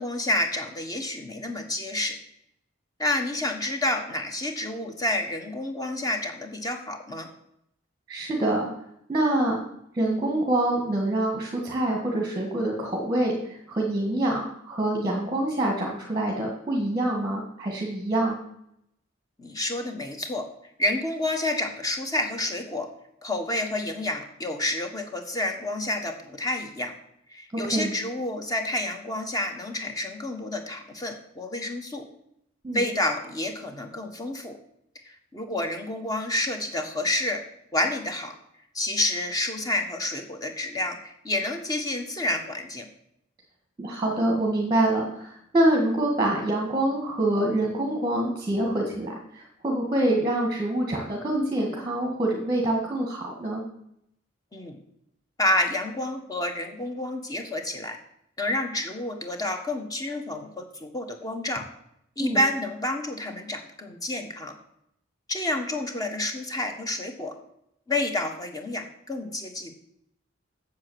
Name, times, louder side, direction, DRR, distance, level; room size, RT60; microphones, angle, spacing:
voice 1, 0.0-2.2 3.0-7.3 19.4-20.5 20.8-22.9 23.2-26.9 27.3-32.0 32.7-34.6 35.0-37.4 37.7-38.3 38.7-42.9 54.5-54.8 55.4-58.0 58.4-61.6 62.2-64.5 65.3-67.3 67.9-69.7, left 1 dB, 20° left, 5 dB, 1.3 m, -29 dB
voice 2, 8.1-8.7 9.1-9.6 9.9-18.4 27.5-27.9 32.6-32.8 43.8-53.6 62.2-62.4, right 1 dB, 20° right, -1 dB, 1.8 m, -26 dB
8.6 x 7.2 x 7.9 m, 0.76 s
head